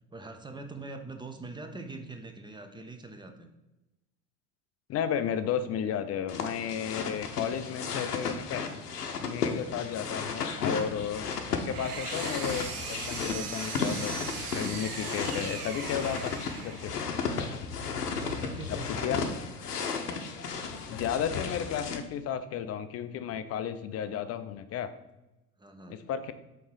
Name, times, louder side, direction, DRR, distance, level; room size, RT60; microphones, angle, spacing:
voice 1, 0.1-3.5 18.1-19.6 25.6-26.0, right 3 dB, 10° right, 6 dB, 0.7 m, -44 dB
voice 2, 4.9-8.6 9.2-12.7 13.1-14.1 14.5-16.3 16.6-16.9 18.7-19.2 20.9-24.9 25.9-26.3, left 8 dB, 35° left, 10 dB, 0.5 m, -33 dB
sound 1, 6.3-22.0, left 5 dB, 90° left, 0.7 m, -34 dB
Engine, 11.3-17.0, right 4 dB, 80° right, 1.0 m, -39 dB
5.3 x 3.8 x 4.7 m, 0.98 s
hypercardioid pair, 70°, 46 cm